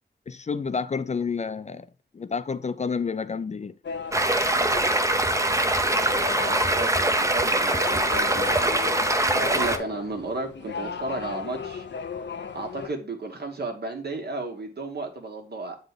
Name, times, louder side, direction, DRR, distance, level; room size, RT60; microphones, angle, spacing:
voice 1, 0.3-1.9 2.1-3.7, left 5 dB, 40° left, 0.4 m, -29 dB
sound 1, 3.8-12.9, left 6 dB, 85° left, 0.6 m, -37 dB
Stream, 4.1-9.8, right 1 dB, 15° right, 0.6 m, -23 dB
voice 2, 6.1-8.8 9.0-11.9 12.5-15.8, right 2 dB, 65° right, 1.5 m, -34 dB
8.1 x 3.9 x 3.3 m
wide cardioid pair, 115°, 18 cm